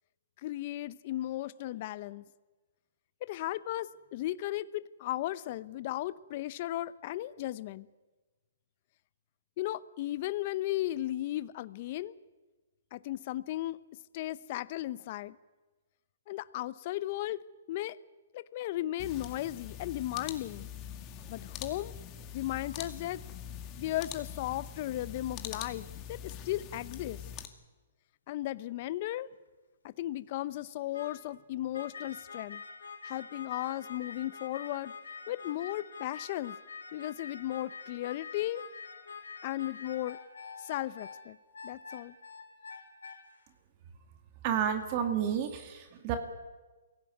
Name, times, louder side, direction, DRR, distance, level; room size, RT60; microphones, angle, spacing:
voice 1, 0.4-2.2 3.2-7.9 9.6-12.1 12.9-13.8 14.1-15.4 16.3-17.4 17.7-18.0 18.3-20.7 21.3-21.9 22.3-23.2 23.8-27.2 28.3-29.3 29.8-32.6 33.0-34.9 35.3-36.6 36.9-38.6 39.4-40.2 40.6-41.4 41.6-42.1, left 15 dB, 45° left, 16 dB, 0.7 m, -35 dB
sound 1, 19.0-27.5, left 9 dB, 30° left, 2.2 m, -43 dB
sound 2, 29.1-29.2 30.9-31.3 31.7-43.4, left 5 dB, 85° left, 3.9 m, -46 dB
voice 2, 44.4-46.2, right 8 dB, 40° right, 6 dB, 2.3 m, -30 dB
24.0 x 17.0 x 9.6 m, 1.3 s
hypercardioid pair, 140°, 0 cm